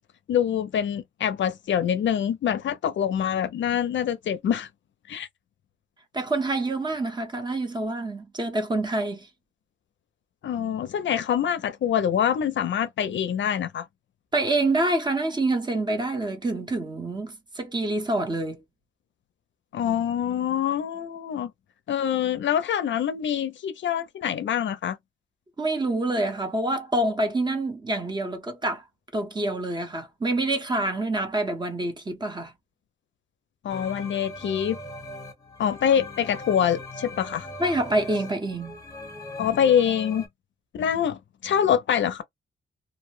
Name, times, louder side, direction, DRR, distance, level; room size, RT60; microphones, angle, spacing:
voice 1, 0.3-4.7 5.1-5.3 10.4-13.9 19.7-21.5 21.9-25.0 33.6-34.8 35.6-37.5 39.4-40.3 40.7-42.2, left 9 dB, 65° left, 0.5 m, -25 dB
voice 2, 6.1-9.3 14.3-18.6 25.6-28.8 29.1-32.5 37.6-38.8, right 2 dB, 20° right, 0.7 m, -27 dB
sound 1, 33.7-40.3, left 2 dB, 15° left, 0.9 m, -40 dB
2.5 x 2.0 x 3.1 m
wide cardioid pair, 160°, 21 cm